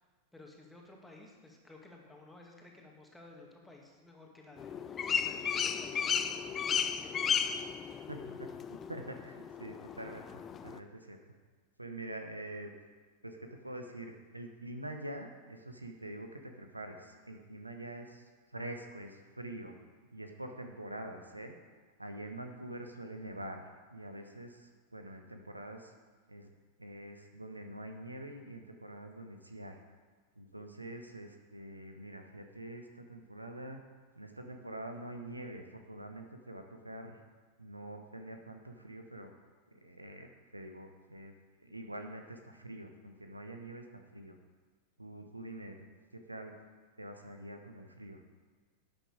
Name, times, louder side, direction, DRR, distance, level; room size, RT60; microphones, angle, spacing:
voice 1, 0.3-7.5, left 2 dB, 5° left, 0 dB, 2.2 m, -55 dB
sound 1, 4.6-10.8, left 7 dB, 25° left, 0.6 m, -35 dB
voice 2, 8.1-8.5 8.9-11.2 11.8-12.7 13.2-19.7 20.1-21.5 22.0-25.9 26.3-26.5 26.8-29.8 30.4-33.8 34.1-37.2 37.6-39.3 39.7-41.3 41.6-44.4 45.0-45.9 46.1-46.5 47.0-48.2, right 1 dB, 85° right, 5 dB, 1.0 m, -45 dB
11.5 x 8.9 x 4.9 m, 1.4 s
figure-of-eight pair, 90°, 0 cm